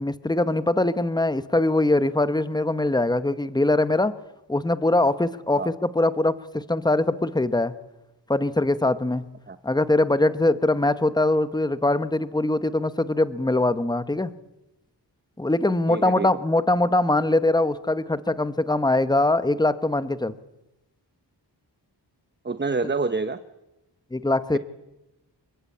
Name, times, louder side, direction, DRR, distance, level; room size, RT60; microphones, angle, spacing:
voice 1, 0.0-4.1 4.5-7.7 8.3-9.2 9.6-14.3 15.4-20.4 24.1-24.6, left 2 dB, 10° left, 13 dB, 1.0 m, -22 dB
voice 2, 15.9-16.3 22.4-23.4, right 3 dB, 25° right, 10 dB, 0.9 m, -27 dB
27.5 x 20.5 x 8.5 m, 0.97 s
wide cardioid pair, 75°, 43 cm